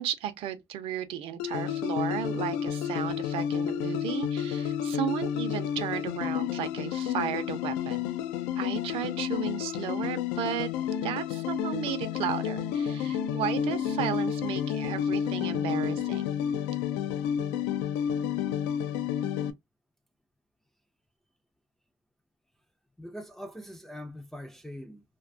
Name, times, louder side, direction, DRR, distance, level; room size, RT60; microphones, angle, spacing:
voice 1, 0.0-8.1 8.6-10.7 11.0-16.4, right 10 dB, 55° right, 0.5 m, -34 dB
sound 1, 1.4-19.5, left 9 dB, 90° left, 0.4 m, -30 dB
voice 2, 23.0-25.0, equal, 5° left, 0.3 m, -42 dB
2.5 x 2.2 x 2.5 m
cardioid pair, 135°, 11 cm